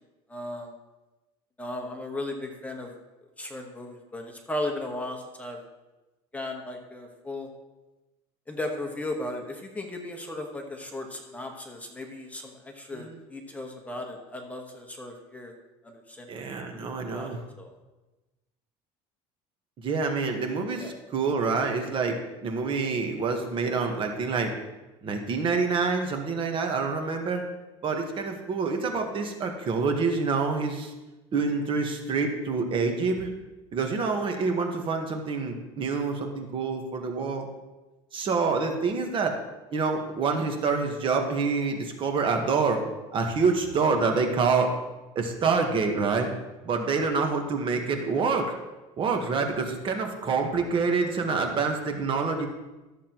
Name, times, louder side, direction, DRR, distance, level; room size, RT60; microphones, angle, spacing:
voice 1, 0.3-0.7 1.6-2.9 3.4-5.6 6.3-7.5 8.5-15.5 15.8-16.8 17.1-17.7 20.8-20.9, left 1 dB, 10° left, 2 dB, 1.2 m, -36 dB
voice 2, 16.3-17.4 19.8-24.5 25.0-27.5 27.8-30.9 31.3-33.3 33.7-37.5 38.1-39.4 39.7-42.8 43.1-44.7 45.1-46.3 46.6-48.5 49.0-52.5, right 4 dB, 40° right, 4 dB, 1.3 m, -27 dB
13.5 x 7.2 x 3.0 m, 1.1 s
cardioid pair, 125°, 14 cm